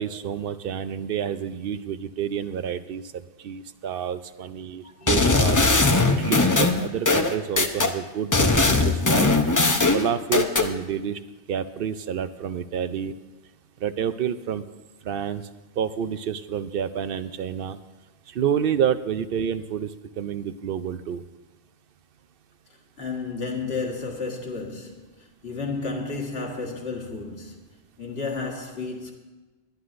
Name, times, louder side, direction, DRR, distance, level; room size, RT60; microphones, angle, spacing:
voice 1, 0.0-3.0 3.4-5.6 6.1-9.3 9.9-11.2 11.5-13.1 13.8-14.6 15.0-15.5 15.8-17.8 18.3-21.2, right 8 dB, 65° right, 0.7 m, -29 dB
sound 1, 5.1-7.9 8.3-10.7, left 3 dB, 20° left, 0.6 m, -20 dB
voice 2, 23.0-29.1, left 4 dB, 65° left, 1.9 m, -32 dB
21.0 x 11.0 x 2.6 m
omnidirectional pair, 1.1 m